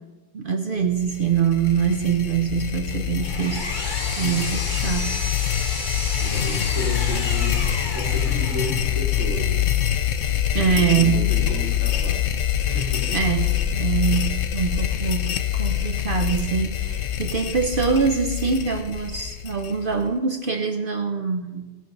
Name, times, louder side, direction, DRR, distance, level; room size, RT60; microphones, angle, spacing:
voice 1, 0.3-3.8 4.2-5.2 10.5-11.3 12.7-21.8, right 6 dB, 50° right, 5 dB, 0.8 m, -24 dB
sound 1, 1.0-20.1, left 11 dB, 85° left, 1.0 m, -25 dB
Power tool, 2.9-9.0, left 2 dB, 40° left, 1.6 m, -32 dB
voice 2, 6.2-7.6 7.9-9.6 10.7-12.2 12.6-13.2, equal, 75° right, -8 dB, 2.7 m, -32 dB
16.0 x 6.5 x 5.4 m, 1.2 s
omnidirectional pair, 1.3 m